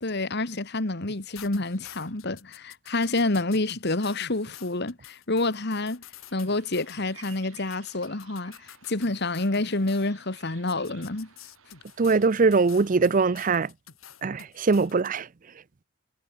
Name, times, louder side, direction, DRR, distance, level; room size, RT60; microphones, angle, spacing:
voice 1, 0.0-6.0 6.3-11.3, left 2 dB, 50° left, 1.8 m, -28 dB
sound 1, 1.1-10.1 10.7-15.1, left 8 dB, 80° left, 3.0 m, -48 dB
Bird vocalization bird call bird song, 6.2-13.6, right 9 dB, 80° right, 7.9 m, -55 dB
voice 2, 12.0-13.7 14.2-15.2, right 4 dB, 40° right, 0.5 m, -22 dB
head